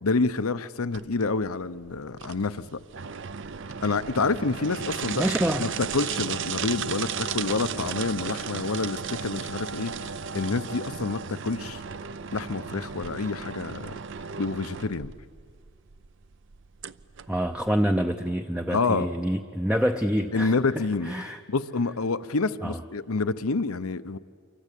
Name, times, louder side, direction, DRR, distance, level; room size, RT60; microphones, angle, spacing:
voice 1, 0.0-2.6 3.8-5.3 5.6-11.8 12.3-13.9 14.4-15.1 18.7-19.1 20.3-21.1 21.5-24.2, left 3 dB, 90° left, 13 dB, 0.8 m, -28 dB
sound 1, 0.9-18.0, right 6 dB, 60° right, 0.6 m, -35 dB
voice 2, 5.2-5.7 17.3-21.4 22.6-22.8, equal, 5° right, 6 dB, 0.6 m, -27 dB
28.0 x 24.0 x 8.4 m, 2.3 s
head